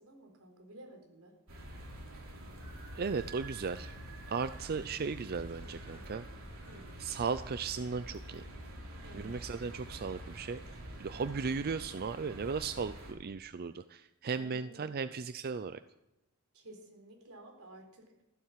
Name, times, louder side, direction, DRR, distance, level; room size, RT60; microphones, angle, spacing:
voice 1, 0.0-1.3 6.6-6.9 9.0-9.3 11.1-11.4 13.7-13.8 14.3-14.8 16.5-18.2, right 1 dB, 85° right, 3 dB, 4.2 m, -54 dB
sound 1, 1.5-13.1, right 1 dB, 70° right, 3.8 m, -47 dB
voice 2, 3.0-3.9 4.3-6.3 7.0-8.5 9.1-10.6 11.0-15.8, right 5 dB, 45° right, 12 dB, 0.5 m, -36 dB
15.0 x 12.5 x 7.5 m, 0.93 s
head